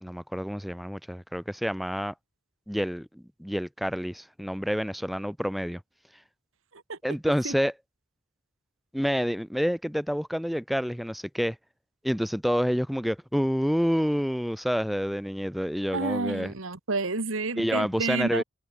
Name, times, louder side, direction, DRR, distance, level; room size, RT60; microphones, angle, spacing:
voice 1, 0.0-2.1 2.7-5.8 7.0-7.7 8.9-11.5 12.0-16.5 17.6-18.4, equal, ahead, 1.2 m, -28 dB
voice 2, 15.9-18.4, right 3 dB, 70° right, 1.7 m, -30 dB
head